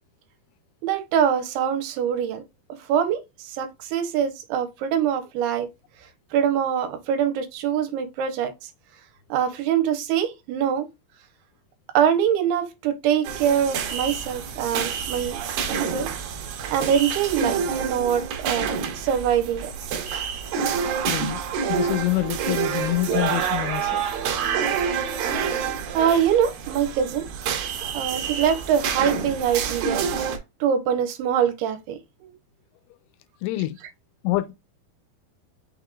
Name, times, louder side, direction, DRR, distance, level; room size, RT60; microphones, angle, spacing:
voice 1, 0.8-2.4 2.9-5.7 6.3-8.5 9.3-10.9 11.9-15.4 15.7-16.1 16.7-19.7 25.9-27.3 27.9-30.0 30.6-32.3, right 8 dB, 90° right, 2.7 m, -24 dB
sound 1, 13.2-30.4, right 7 dB, 75° right, 2.3 m, -28 dB
voice 2, 21.1-24.0 33.4-33.8 34.2-34.5, left 17 dB, 90° left, 2.6 m, -26 dB
6.0 x 3.7 x 2.3 m
omnidirectional pair, 4.6 m